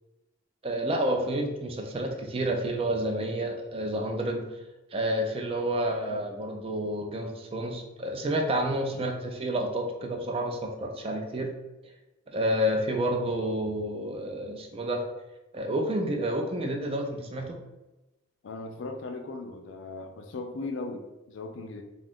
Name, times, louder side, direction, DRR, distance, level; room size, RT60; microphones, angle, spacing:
voice 1, 0.6-4.4 4.9-11.5 12.3-15.0 15.5-17.6, right 1 dB, 30° right, 3 dB, 0.4 m, -29 dB
voice 2, 5.6-6.2 8.9-9.2 18.4-21.8, left 3 dB, 65° left, 5 dB, 0.4 m, -38 dB
2.5 x 2.4 x 3.5 m, 1.0 s
head